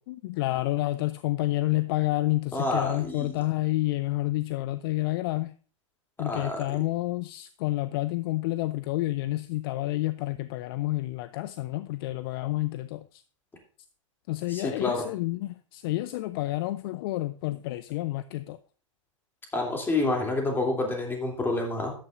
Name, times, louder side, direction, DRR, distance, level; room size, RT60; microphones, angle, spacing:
voice 1, 0.1-5.5 6.2-13.2 14.3-18.6, left 17 dB, 45° left, 0.4 m, -29 dB
voice 2, 2.5-3.3 6.2-6.6 14.5-15.0 19.5-21.9, left 2 dB, 10° left, 2.9 m, -28 dB
13.0 x 9.2 x 2.6 m
figure-of-eight pair, 95°, 17 cm